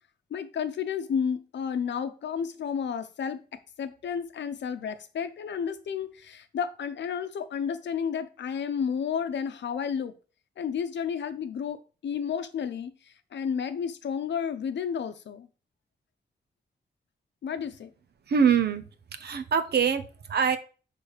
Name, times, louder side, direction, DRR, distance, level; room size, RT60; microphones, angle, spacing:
voice 1, 0.3-3.4 3.8-10.1 10.6-15.5 17.4-17.9, left 7 dB, 85° left, 0.7 m, -31 dB
voice 2, 18.3-18.8 19.1-20.6, right 7 dB, 65° right, 0.7 m, -24 dB
6.4 x 3.4 x 4.9 m
wide cardioid pair, 160°, 18 cm